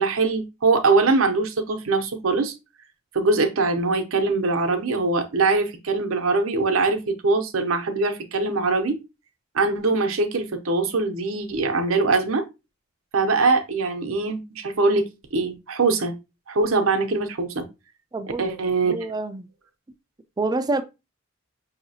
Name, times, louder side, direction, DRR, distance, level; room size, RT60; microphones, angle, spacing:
voice 1, 0.0-2.5 3.1-9.0 9.5-12.4 13.1-15.0 15.3-16.1 16.5-17.7 18.4-18.9, right 3 dB, 75° right, 0.7 m, -22 dB
voice 2, 18.1-18.5 18.8-19.5 20.4-20.8, right 2 dB, 20° right, 0.4 m, -26 dB
5.7 x 2.8 x 2.7 m
head